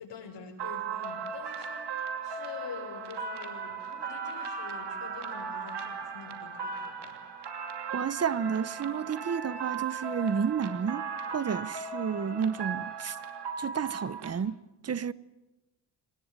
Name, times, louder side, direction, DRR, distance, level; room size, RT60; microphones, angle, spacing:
voice 1, 0.0-7.2, left 5 dB, 65° left, 5.5 m, -46 dB
sound 1, 0.6-14.3, right 5 dB, 60° right, 2.7 m, -37 dB
voice 2, 7.9-11.1 11.3-13.2 13.6-14.6 14.8-15.1, right 7 dB, 35° right, 0.8 m, -31 dB
24.5 x 19.5 x 9.0 m
cardioid pair, 105°, 45 cm